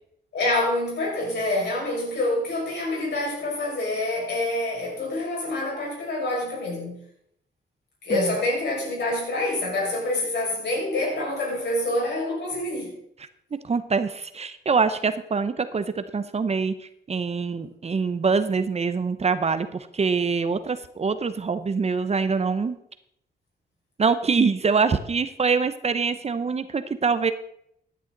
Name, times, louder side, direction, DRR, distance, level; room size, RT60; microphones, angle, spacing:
voice 1, 0.3-7.0 8.0-13.0, left 2 dB, 75° left, -2 dB, 5.8 m, -26 dB
voice 2, 13.6-22.8 24.0-27.3, right 5 dB, 35° right, 11 dB, 0.8 m, -24 dB
14.5 x 10.5 x 4.0 m, 0.73 s
cardioid pair, 95°, 18 cm